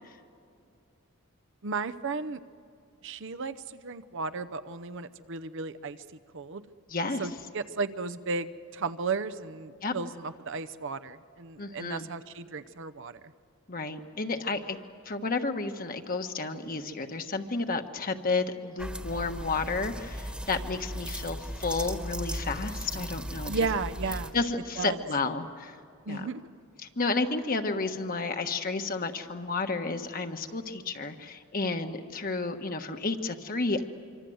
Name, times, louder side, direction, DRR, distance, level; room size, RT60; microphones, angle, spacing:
voice 1, 1.6-2.4 3.0-6.0 6.3-6.6 7.2-13.2 23.5-24.4 24.8-25.0 26.1-26.4, right 4 dB, 60° right, 12 dB, 0.8 m, -34 dB
voice 2, 6.9-7.2 9.8-10.0 11.6-12.1 13.7-14.8 15.0-23.5 24.3-25.8 26.1-26.3 27.0-33.9, left 3 dB, 40° left, 6 dB, 1.3 m, -31 dB
sound 1, 18.8-24.3, equal, 5° right, 1.4 m, -37 dB
25.5 x 25.5 x 7.9 m, 2.4 s
head